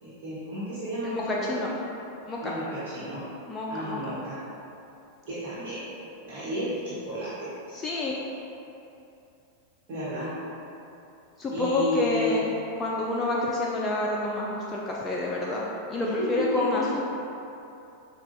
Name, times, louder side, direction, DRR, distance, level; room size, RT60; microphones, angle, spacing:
voice 1, 0.0-1.7 2.4-3.2 3.7-4.4 5.3-5.9 6.2-7.8 9.9-10.3 11.5-12.4 16.0-16.9, equal, 45° right, -12 dB, 1.3 m, -32 dB
voice 2, 1.0-1.7 2.3-2.5 3.5-4.0 7.7-8.1 11.4-12.5 12.8-17.0, left 2 dB, 15° left, -4 dB, 0.4 m, -28 dB
6.0 x 2.3 x 2.7 m, 2.7 s
figure-of-eight pair, 90°, 0 cm